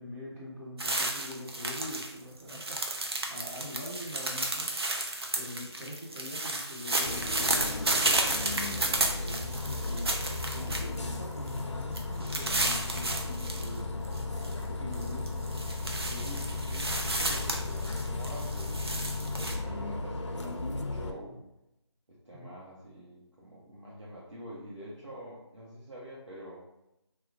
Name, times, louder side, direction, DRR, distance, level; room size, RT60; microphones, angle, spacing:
voice 1, 0.0-4.9 5.3-10.1 10.5-14.2 14.6-15.4 21.2-21.4 22.3-22.5, left 1 dB, 30° right, -10 dB, 1.2 m, -43 dB
sound 1, 0.8-2.1 2.4-11.1 11.5-11.6 11.9-13.7 14.0-14.5 14.9-19.5, right 2 dB, 60° right, 0.5 m, -32 dB
Bus, 7.1-21.1, left 2 dB, 80° left, 0.5 m, -35 dB
voice 2, 16.1-21.4 22.1-26.6, equal, 90° right, -7 dB, 0.9 m, -46 dB
3.1 x 2.3 x 2.5 m, 0.89 s
figure-of-eight pair, 170°, 15 cm